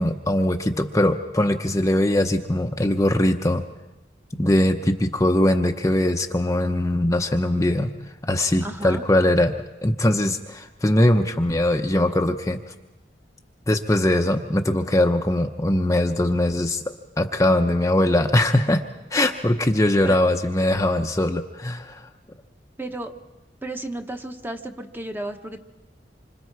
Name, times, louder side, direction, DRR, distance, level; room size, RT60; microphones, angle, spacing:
voice 1, 0.0-3.6 4.3-7.9 8.2-9.5 9.8-12.7 13.7-16.8 17.2-18.8 19.1-22.0, left 1 dB, 20° left, 4 dB, 0.8 m, -21 dB
voice 2, 8.6-9.0 20.0-20.2 22.8-23.1 23.6-25.6, right 1 dB, 10° right, 5 dB, 1.1 m, -33 dB
27.0 x 25.5 x 4.8 m, 1.0 s
head